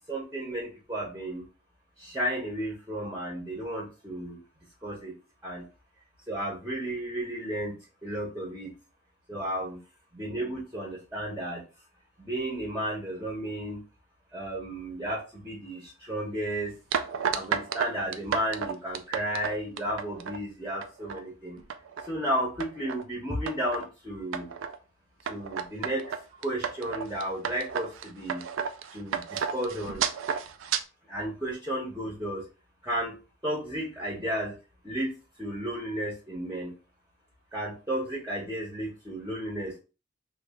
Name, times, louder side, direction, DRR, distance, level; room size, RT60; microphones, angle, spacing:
voice 1, 0.0-1.4 2.0-4.4 4.8-5.1 5.4-5.6 6.3-7.7 8.0-8.7 9.3-9.8 10.1-11.6 12.2-13.8 14.3-16.7 17.3-21.6 22.0-24.5 25.2-28.4 28.9-30.0 31.1-32.4 32.8-33.2 33.4-34.5 34.8-35.1 35.4-36.7 37.5-39.8, right 1 dB, 10° right, -3 dB, 0.8 m, -33 dB
sound 1, 16.9-20.4 20.8-21.2 21.6-22.1 22.6-23.0 23.5-23.9 24.3-24.8 25.3-30.8, right 7 dB, 75° right, 0.4 m, -32 dB
3.2 x 2.3 x 3.5 m, 0.33 s
head